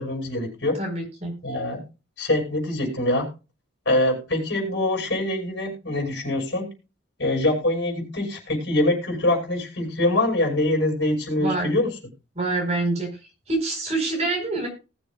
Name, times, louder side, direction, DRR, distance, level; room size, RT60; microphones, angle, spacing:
voice 1, 0.0-0.8 1.4-1.8 2.2-3.3 3.9-6.7 7.2-11.9, left 1 dB, 65° left, 0 dB, 5.3 m, -24 dB
voice 2, 0.8-1.3 11.4-11.7 12.3-13.1 13.5-14.7, right 2 dB, 35° right, 2 dB, 4.3 m, -26 dB
19.5 x 7.0 x 2.3 m, 0.30 s
head